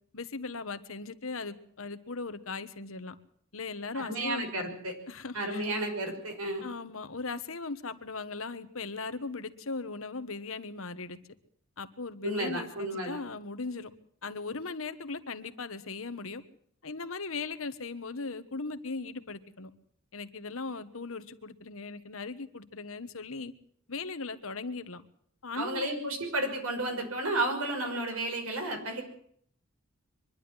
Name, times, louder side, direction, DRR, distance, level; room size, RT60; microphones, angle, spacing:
voice 1, 0.1-3.1 3.5-4.8 5.1-5.6 6.6-11.2 11.8-13.9 14.2-16.4 16.8-19.7 20.1-23.5 23.9-25.0 25.4-25.9, left 3 dB, 75° left, 11 dB, 1.4 m, -38 dB
voice 2, 3.9-4.9 5.3-6.7 12.2-13.2 25.6-29.0, right 1 dB, 85° right, 4 dB, 6.1 m, -32 dB
24.0 x 11.5 x 9.9 m, 0.64 s
head